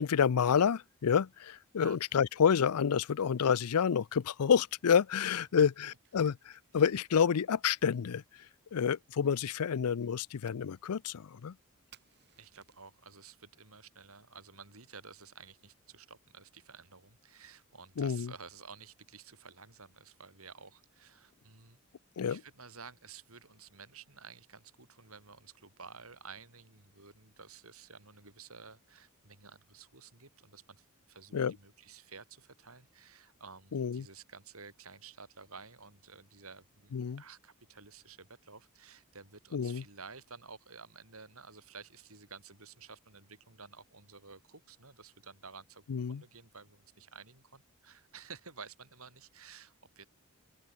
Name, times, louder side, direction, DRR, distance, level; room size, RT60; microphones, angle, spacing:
voice 1, 0.0-8.2 8.7-11.5 18.0-18.3 22.2-22.4 31.3-31.5 33.7-34.1 36.9-37.2 39.5-39.8 45.9-46.2, left 7 dB, 90° left, 0.5 m, -29 dB
Fire, 4.7-13.0, right 9 dB, 50° right, 6.9 m, -68 dB
voice 2, 12.4-21.8 22.2-50.1, right 5 dB, 70° right, 6.8 m, -52 dB
open air
head